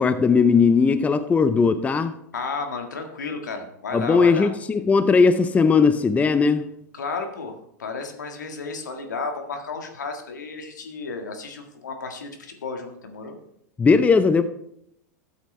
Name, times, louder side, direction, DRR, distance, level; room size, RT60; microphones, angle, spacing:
voice 1, 0.0-2.1 3.9-6.7 13.8-14.4, left 5 dB, 15° left, 0.6 m, -18 dB
voice 2, 2.3-4.5 6.9-13.4, left 4 dB, 80° left, 1.7 m, -33 dB
13.0 x 8.1 x 3.2 m
hypercardioid pair, 100°, 9 cm